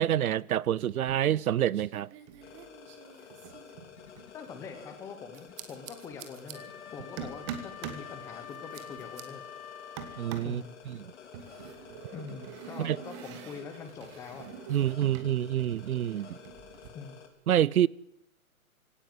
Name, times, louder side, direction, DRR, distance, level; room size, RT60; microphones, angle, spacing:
voice 1, 0.0-2.1 10.2-10.6 11.0-11.1 12.8-13.0 14.7-16.4 17.5-17.9, right 11 dB, 75° right, 0.7 m, -27 dB
sound 1, 0.9-1.4 1.7-4.3 5.3-6.5 7.2-8.1 8.5-9.2 10.0-10.6 11.3-15.3 15.6-16.9, right 8 dB, 20° right, 1.5 m, -45 dB
sound 2, 2.4-17.3, left 7 dB, 50° left, 3.8 m, -51 dB
voice 2, 4.3-6.6 6.9-9.4 10.1-10.7 12.1-14.5 16.9-17.2, left 5 dB, 5° left, 0.9 m, -44 dB
Wind instrument woodwind instrument, 6.5-10.5, left 8 dB, 85° left, 1.9 m, -46 dB
18.5 x 17.0 x 9.4 m
hypercardioid pair, 165°, 43 cm